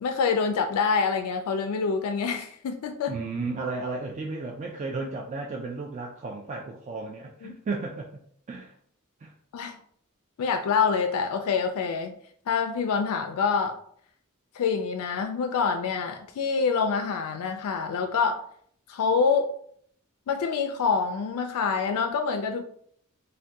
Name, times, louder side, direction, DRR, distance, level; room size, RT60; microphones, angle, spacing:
voice 1, 0.0-3.1 7.4-7.5 9.5-9.8 10.4-12.1 12.5-13.8 14.5-18.4 18.9-19.5 20.3-22.6, left 5 dB, 85° left, 5 dB, 0.3 m, -26 dB
voice 2, 3.1-8.1 8.5-8.7 9.2-9.3, right 3 dB, 35° right, 0 dB, 0.3 m, -34 dB
2.6 x 2.2 x 3.4 m, 0.62 s
head